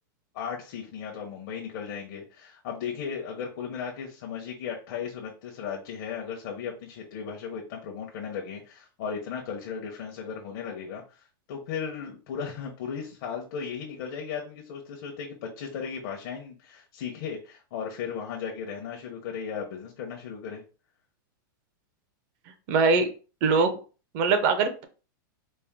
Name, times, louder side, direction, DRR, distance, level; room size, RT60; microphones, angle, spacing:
voice 1, 0.3-20.6, left 7 dB, 50° left, 1 dB, 0.8 m, -36 dB
voice 2, 22.7-23.1 23.4-23.8 24.1-24.8, right 4 dB, 40° right, 7 dB, 0.7 m, -22 dB
4.3 x 2.1 x 3.5 m, 0.34 s
supercardioid pair, 160°, 11 cm